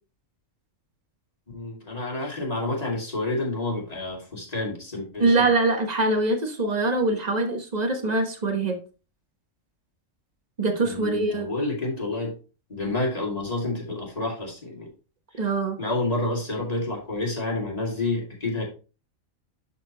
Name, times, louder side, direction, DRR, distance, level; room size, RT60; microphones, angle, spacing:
voice 1, 1.5-5.5 10.8-12.3 12.7-14.9 15.8-18.6, left 2 dB, 30° left, -2 dB, 2.2 m, -29 dB
voice 2, 5.2-8.8 10.6-11.5 15.4-15.8, right 2 dB, 35° right, 5 dB, 1.1 m, -23 dB
11.0 x 4.1 x 2.8 m, 0.33 s
omnidirectional pair, 1.4 m